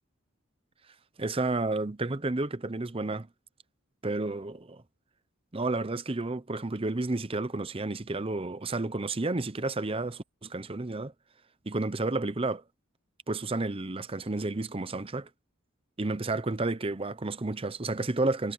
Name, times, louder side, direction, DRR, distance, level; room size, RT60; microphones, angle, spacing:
voice 1, 1.2-3.3 4.0-4.8 5.5-11.1 11.7-12.6 13.3-15.3 16.0-18.5, right 2 dB, 25° right, 0.8 m, -31 dB
head